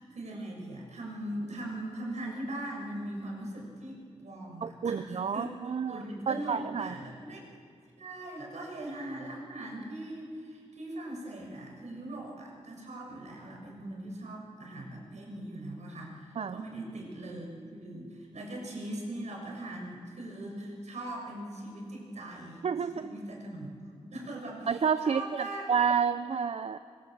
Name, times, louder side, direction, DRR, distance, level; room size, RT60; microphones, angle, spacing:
voice 1, 0.0-5.5 5.9-7.6 8.0-22.6 22.9-24.7 25.0-25.7, right 1 dB, 80° right, -1 dB, 6.9 m, -40 dB
voice 2, 4.6-6.9 16.4-16.6 22.6-23.1 24.7-26.8, right 6 dB, 60° right, 11 dB, 0.6 m, -30 dB
25.5 x 23.5 x 7.8 m, 2.1 s
wide cardioid pair, 120°, 12 cm